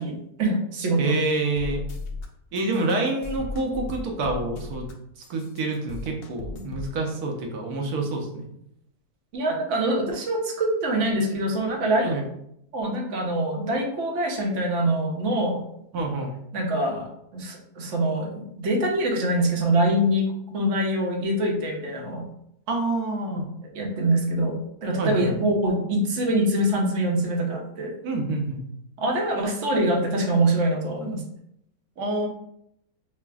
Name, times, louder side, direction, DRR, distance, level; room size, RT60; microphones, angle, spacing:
voice 1, 0.0-1.2 9.3-12.2 12.7-15.6 16.5-20.3 20.5-22.3 23.7-27.9 29.0-31.2, right 1 dB, 60° right, 1 dB, 1.0 m, -24 dB
voice 2, 1.0-1.8 2.5-4.9 5.3-8.5 12.0-12.2 15.9-16.3 22.7-23.5 25.0-25.3 28.0-28.6 32.0-32.3, right 2 dB, 80° right, 1 dB, 1.3 m, -27 dB
sound 1, 1.6-2.3 2.5-4.9 5.2-6.9, left 3 dB, 80° left, 0.5 m, -36 dB
5.7 x 2.1 x 2.3 m, 0.77 s
omnidirectional pair, 1.6 m